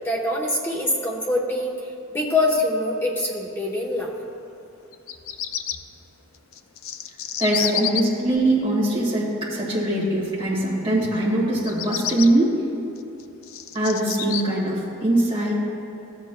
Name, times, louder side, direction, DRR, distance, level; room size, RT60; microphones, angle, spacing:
voice 1, 0.0-1.7 2.1-4.1, left 2 dB, 10° left, -3 dB, 1.0 m, -24 dB
Bird vocalization bird call bird song, 4.9-5.8 6.5-8.0 11.5-12.3 13.0-14.4, left 9 dB, 75° left, 0.4 m, -28 dB
voice 2, 7.4-12.5 13.7-15.7, right 1 dB, 25° right, -6 dB, 1.6 m, -22 dB
14.0 x 7.4 x 2.3 m, 2.9 s
head